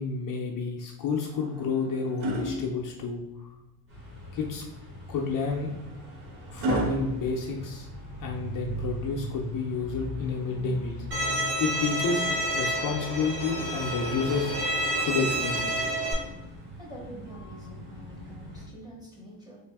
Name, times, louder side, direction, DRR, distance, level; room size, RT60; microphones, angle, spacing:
voice 1, 0.0-3.2 4.3-4.6 5.1-5.7 6.5-7.9 8.2-11.1 11.6-14.6 14.9-15.9, left 5 dB, 50° left, -1 dB, 0.6 m, -30 dB
sound 1, 1.1-3.5 5.1-8.3 10.1-11.2 13.2-15.0 16.3-16.5, right 1 dB, 75° right, 0.7 m, -36 dB
sound 2, 3.9-18.7, equal, 30° right, 1.3 m, -40 dB
Bowed string instrument, 11.1-16.1, right 1 dB, 55° right, 1.5 m, -29 dB
voice 2, 16.8-19.6, equal, 10° right, -4 dB, 1.0 m, -46 dB
3.2 x 2.5 x 3.5 m, 0.97 s
cardioid pair, 135°, 42 cm